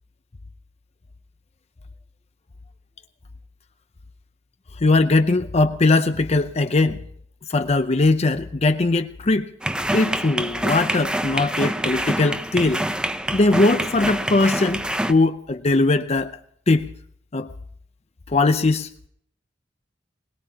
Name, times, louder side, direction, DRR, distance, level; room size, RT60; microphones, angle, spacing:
voice 1, 4.8-7.0 7.5-9.5 9.9-12.8 13.3-16.4 16.7-16.9 17.3-17.5 18.3-18.9, left 2 dB, 35° left, 0.6 m, -20 dB
sound 1, 9.6-15.1, right 1 dB, 5° right, 0.7 m, -26 dB
21.5 x 20.0 x 2.9 m
head